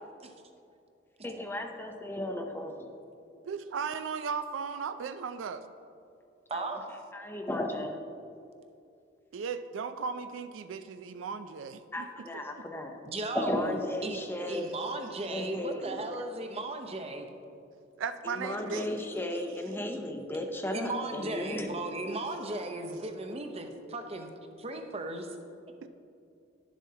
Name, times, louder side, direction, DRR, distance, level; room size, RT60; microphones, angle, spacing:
voice 1, 1.2-2.9 6.5-6.8 7.1-8.0 11.9-13.0 13.3-14.7 15.3-16.0 18.2-21.8, left 1 dB, 10° left, 4 dB, 0.5 m, -35 dB
voice 2, 3.5-5.6 9.3-12.1 16.2-16.3 18.0-18.9 25.8-25.9, right 6 dB, 80° right, 10 dB, 0.4 m, -36 dB
voice 3, 6.5-6.9 13.0-13.7 14.0-14.2 14.5-17.3 20.7-24.3 24.6-25.3, right 2 dB, 30° right, 5 dB, 0.7 m, -36 dB
11.5 x 7.3 x 2.8 m, 2.5 s
head